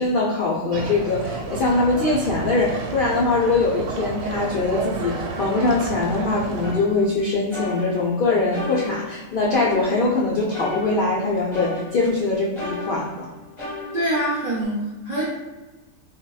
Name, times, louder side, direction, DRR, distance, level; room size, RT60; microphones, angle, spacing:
voice 1, 0.0-13.3, left 3 dB, 70° left, -4 dB, 0.5 m, -22 dB
sound 1, 0.7-6.7, right 4 dB, 80° right, 1.0 m, -31 dB
sound 2, 6.6-8.2 8.5-10.2 10.5-12.2 12.5-14.6, left 2 dB, 25° left, 0.8 m, -34 dB
voice 2, 13.9-15.2, right 1 dB, 50° right, -6 dB, 0.5 m, -24 dB
4.1 x 2.2 x 2.3 m, 1.2 s
omnidirectional pair, 1.4 m